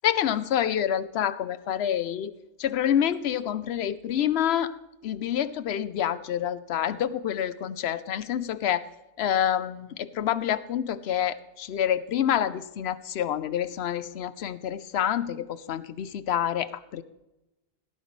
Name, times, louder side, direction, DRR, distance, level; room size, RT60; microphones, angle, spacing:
voice 1, 0.0-2.3 2.6-4.8 5.0-8.9 9.2-17.0, left 10 dB, 85° left, 16 dB, 0.9 m, -27 dB
17.0 x 9.9 x 3.1 m, 0.98 s
omnidirectional pair, 1.0 m